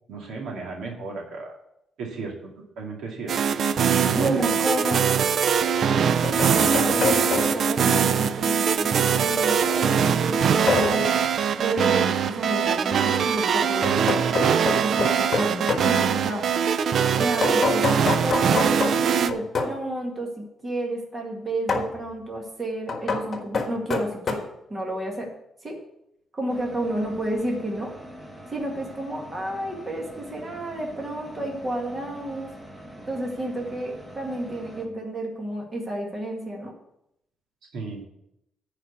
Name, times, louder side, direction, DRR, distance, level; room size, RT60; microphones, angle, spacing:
voice 1, 0.1-1.5 2.0-2.5 2.8-3.3 4.1-4.6 37.7-38.0, right 4 dB, 85° right, 0 dB, 2.3 m, -33 dB
sound 1, 3.3-19.3, right 7 dB, 55° right, 0.4 m, -22 dB
voice 2, 4.0-5.0 6.6-11.2 11.6-14.2 14.8-16.4 17.1-24.4 24.7-25.3 25.6-25.8 26.3-27.9 28.5-32.5 33.1-36.7, right 1 dB, 25° right, 0 dB, 2.1 m, -31 dB
sound 2, 4.4-4.5 5.8-7.8 10.7-11.1 13.8-15.9 17.4-19.8 21.7-22.0 22.9-24.3, left 4 dB, 35° left, 1.5 m, -27 dB
sound 3, 26.5-34.9, equal, 10° right, 1.2 m, -44 dB
10.0 x 4.9 x 8.1 m, 0.80 s
cardioid pair, 150°, 0 cm